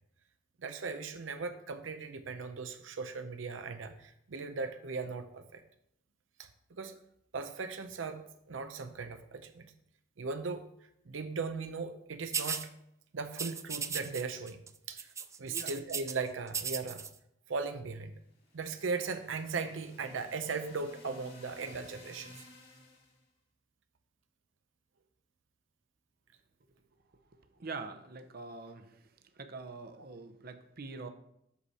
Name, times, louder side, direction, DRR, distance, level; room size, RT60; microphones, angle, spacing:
voice 1, 0.6-5.6 6.4-7.0 7.3-9.7 10.2-10.6 11.1-12.7 13.1-15.1 15.4-17.0 17.5-18.1 18.5-22.5, right 4 dB, 85° right, 8 dB, 0.6 m, -38 dB
sound 1, 12.3-12.7 13.3-14.2 14.5-14.7 15.0-16.1 16.5-17.1, right 6 dB, 15° right, 0.3 m, -36 dB
sound 2, 18.3-23.2, left 2 dB, 55° left, 2.0 m, -55 dB
voice 2, 27.6-29.0 29.4-31.1, right 3 dB, 50° right, 7 dB, 0.7 m, -44 dB
8.3 x 6.3 x 4.2 m, 0.76 s
head